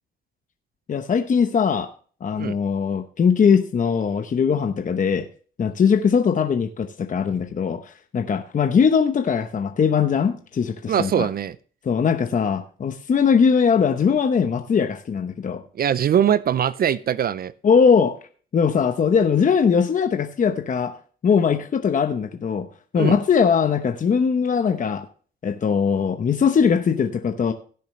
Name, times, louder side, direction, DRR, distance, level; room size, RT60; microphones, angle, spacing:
voice 1, 0.9-1.9 2.2-5.3 5.6-11.3 11.8-15.6 17.6-18.2 18.5-21.0 21.2-22.7 22.9-25.1 25.4-27.5, left 6 dB, 40° left, 0.9 m, -20 dB
voice 2, 10.9-11.6 15.8-17.5 23.0-23.2, right 9 dB, 50° right, 0.5 m, -21 dB
17.0 x 6.9 x 3.2 m
cardioid pair, 90°, 20 cm